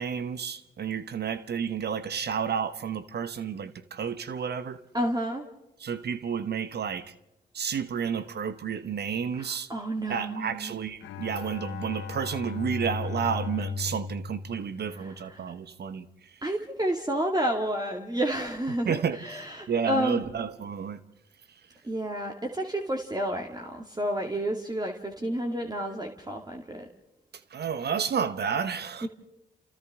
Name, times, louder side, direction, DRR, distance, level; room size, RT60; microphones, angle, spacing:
voice 1, 0.0-4.8 5.8-7.1 7.5-9.7 10.1-16.1 18.7-21.0 27.5-29.1, right 7 dB, 60° right, 1.1 m, -31 dB
voice 2, 4.9-5.4 9.4-10.7 16.4-19.0 19.2-20.2 21.8-26.8 29.0-29.1, right 1 dB, 20° right, 2.3 m, -30 dB
Bowed string instrument, 11.0-15.4, left 5 dB, 80° left, 1.4 m, -36 dB
29.0 x 28.5 x 3.7 m
hypercardioid pair, 40°, 19 cm